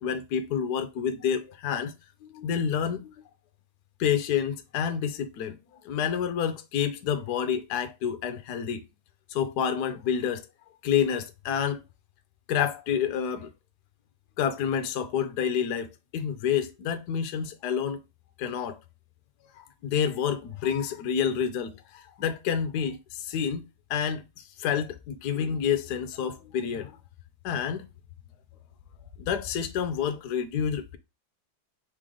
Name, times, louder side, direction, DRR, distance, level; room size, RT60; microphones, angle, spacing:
voice 1, 0.0-1.9 2.2-3.1 4.0-5.6 5.8-8.8 9.3-10.4 10.8-11.8 12.5-13.5 14.4-18.0 18.4-18.8 19.5-23.6 23.9-24.2 24.6-26.9 27.4-27.9 29.2-31.0, left 8 dB, 65° left, 1.0 m, -28 dB
4.2 x 3.3 x 3.7 m
omnidirectional pair, 2.2 m